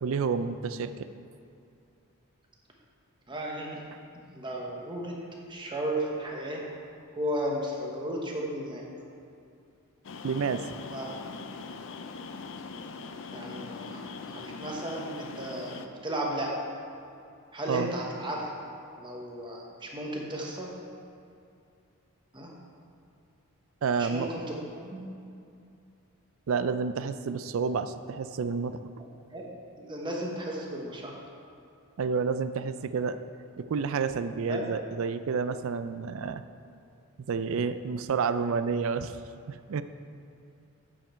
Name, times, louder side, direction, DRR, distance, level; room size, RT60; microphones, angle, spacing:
voice 1, 0.0-1.1 10.2-10.7 17.7-17.9 23.8-24.3 26.5-28.8 32.0-33.2 33.6-36.4 37.3-39.2 39.5-39.8, right 5 dB, 65° right, 12 dB, 0.4 m, -29 dB
voice 2, 3.3-3.8 4.1-6.7 7.1-8.8 10.9-11.1 13.3-16.7 17.5-18.5 19.0-20.7 22.3-22.5 24.0-25.0 29.3-29.5 29.8-31.1 34.5-34.6, right 1 dB, 20° right, -2 dB, 1.1 m, -34 dB
sound 1, 10.0-15.9, left 4 dB, 60° left, 0.5 m, -41 dB
8.7 x 7.3 x 4.4 m, 2.6 s
head